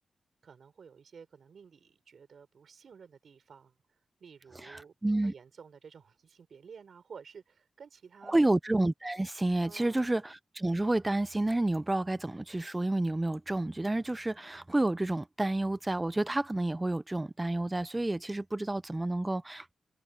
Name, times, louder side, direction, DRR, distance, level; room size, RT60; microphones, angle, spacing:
voice 1, 0.4-3.7 4.2-4.9 5.2-8.5 9.6-10.0, right 6 dB, 65° right, 5.4 m, -52 dB
voice 2, 4.6-5.3 8.3-19.7, right 2 dB, 15° right, 0.6 m, -30 dB
wide cardioid pair, 100°, 0 cm